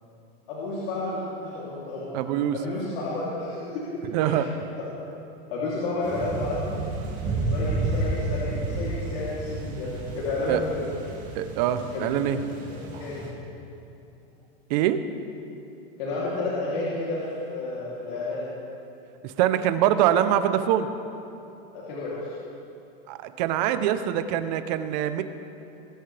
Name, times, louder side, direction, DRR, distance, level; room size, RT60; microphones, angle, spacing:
voice 1, 0.5-2.1 2.5-4.5 5.5-6.8 7.2-10.9 12.5-12.6 13.0-13.2 16.0-17.2 17.5-18.5 21.7-22.3, left 2 dB, 65° left, -8 dB, 3.1 m, -31 dB
voice 2, 2.1-2.6 4.1-4.5 10.5-10.6 11.3-12.4 14.7-15.0 19.2-20.9 23.1-25.2, right 11 dB, 45° right, 10 dB, 0.8 m, -24 dB
sound 1, 6.0-13.3, right 2 dB, 25° right, 2.4 m, -31 dB
21.5 x 11.5 x 3.4 m, 2.8 s
supercardioid pair, 160°, 30 cm